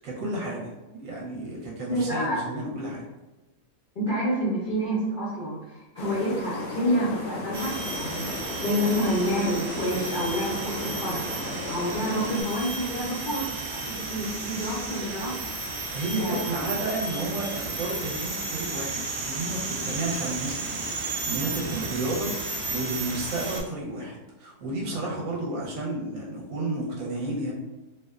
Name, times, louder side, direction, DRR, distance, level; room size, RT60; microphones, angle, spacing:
voice 1, 0.0-0.6 0.9-3.0 15.9-27.5, right 2 dB, 65° right, -4 dB, 1.0 m, -32 dB
voice 2, 1.9-2.4 4.0-11.3 11.6-15.4 16.2-16.6, equal, 65° left, -8 dB, 0.4 m, -28 dB
sound 1, 6.0-12.4, left 2 dB, 90° left, 1.1 m, -35 dB
sound 2, 7.5-23.6, right 3 dB, 85° right, 0.5 m, -33 dB
2.6 x 2.0 x 2.3 m, 1.1 s
omnidirectional pair, 1.6 m